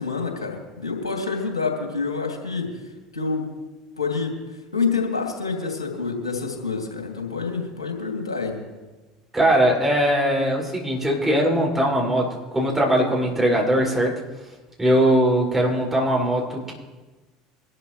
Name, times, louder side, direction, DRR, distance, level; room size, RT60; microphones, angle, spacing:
voice 1, 0.0-2.8 3.1-3.5 4.0-4.3 4.7-8.6, left 4 dB, 90° left, 1 dB, 2.9 m, -27 dB
voice 2, 9.3-14.2 14.8-16.7, right 1 dB, 10° right, -3 dB, 5.9 m, -20 dB
24.0 x 12.5 x 3.2 m, 1.2 s
hypercardioid pair, 70°, 3 cm